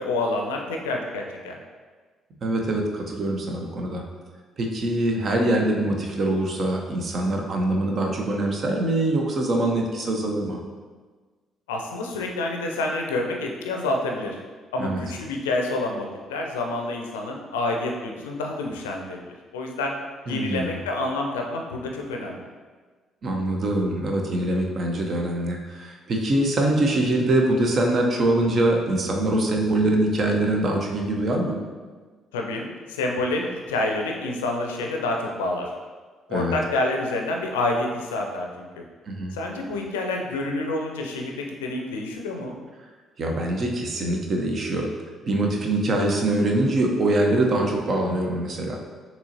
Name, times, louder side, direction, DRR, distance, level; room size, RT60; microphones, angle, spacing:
voice 1, 0.0-1.6 11.7-14.4 14.7-19.2 19.5-19.9 20.3-22.3 32.3-35.7 36.3-38.8 39.3-42.6, left 2 dB, 75° left, 1 dB, 0.5 m, -28 dB
voice 2, 2.4-4.0 4.6-10.6 14.8-15.0 20.3-20.8 23.2-31.6 36.3-36.5 39.1-39.3 43.2-44.9 45.3-48.8, right 1 dB, 45° right, 1 dB, 0.7 m, -23 dB
6.2 x 3.0 x 2.8 m, 1.4 s
figure-of-eight pair, 45°, 0 cm